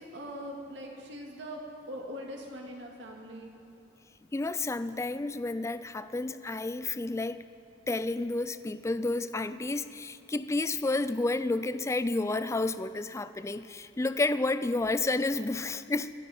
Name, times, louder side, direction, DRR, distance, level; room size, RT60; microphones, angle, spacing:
voice 1, 0.0-1.6 1.9-3.5, equal, 65° right, 0 dB, 2.1 m, -42 dB
voice 2, 4.3-7.4 7.9-16.1, left 2 dB, 15° left, 13 dB, 0.4 m, -30 dB
26.0 x 9.9 x 4.3 m, 2.7 s
head